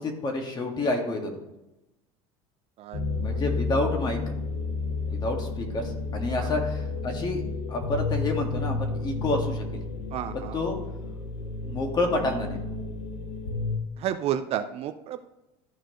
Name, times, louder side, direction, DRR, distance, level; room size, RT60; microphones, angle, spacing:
voice 1, 0.0-1.4 3.2-4.2 5.1-7.4 7.7-9.8 10.3-10.8 11.6-12.6, left 2 dB, 30° left, 2 dB, 1.8 m, -29 dB
voice 2, 2.8-3.4 6.4-6.6 10.1-10.6 14.0-15.2, right 10 dB, 45° right, 10 dB, 0.5 m, -32 dB
sound 1, 2.9-13.8, left 3 dB, 70° left, 1.4 m, -31 dB
13.5 x 4.6 x 3.1 m, 0.95 s
supercardioid pair, 115°, 14 cm